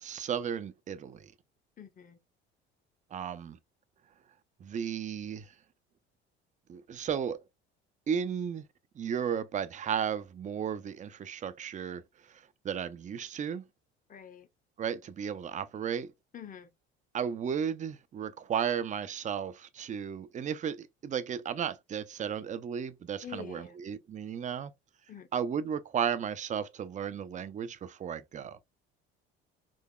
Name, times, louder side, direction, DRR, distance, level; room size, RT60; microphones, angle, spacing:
voice 1, 0.0-1.3 3.1-3.6 4.6-5.5 6.7-7.4 8.1-8.7 9.0-12.0 12.3-13.7 14.8-16.1 17.1-24.7 25.3-28.6, right 8 dB, 25° right, 0.4 m, -34 dB
voice 2, 1.8-2.2 14.1-14.5 16.3-16.7 23.2-23.8 25.1-25.3, left 8 dB, 25° left, 0.7 m, -46 dB
3.8 x 2.8 x 2.2 m
hypercardioid pair, 60°, 32 cm